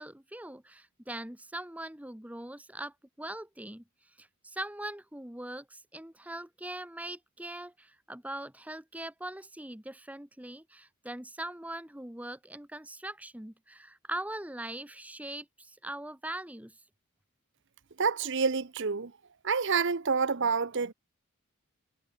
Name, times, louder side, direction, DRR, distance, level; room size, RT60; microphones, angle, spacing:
voice 1, 0.0-3.8 4.2-16.8, right 1 dB, 5° right, 1.1 m, -41 dB
voice 2, 18.0-19.1 19.4-20.9, right 5 dB, 55° right, 0.8 m, -28 dB
head